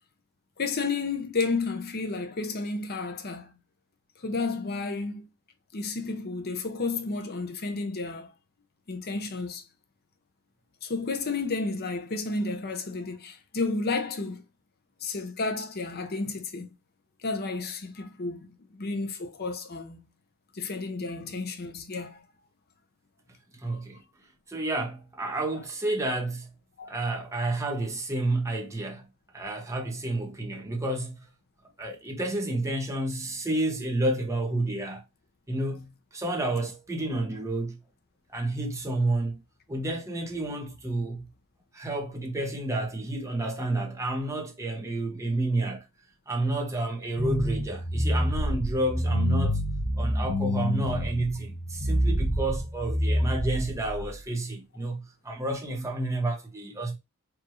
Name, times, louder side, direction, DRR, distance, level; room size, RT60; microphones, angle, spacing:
voice 1, 0.6-3.5 4.2-5.3 5.7-8.3 8.9-9.6 10.8-14.4 15.0-16.7 17.2-18.4 18.8-20.0 20.5-22.2 23.6-23.8 25.5-25.6 26.8-27.1, left 3 dB, 45° left, 0.7 m, -32 dB
voice 2, 23.6-24.0 24.5-26.5 26.9-29.1 29.3-31.2 31.8-35.0 35.5-37.8 38.3-39.4 39.7-41.3 41.7-45.8 46.3-49.6 50.0-57.0, right 2 dB, 15° right, 1.0 m, -30 dB
sound 1, 47.2-54.1, equal, 85° left, 1.6 m, -27 dB
4.6 x 2.6 x 3.1 m
head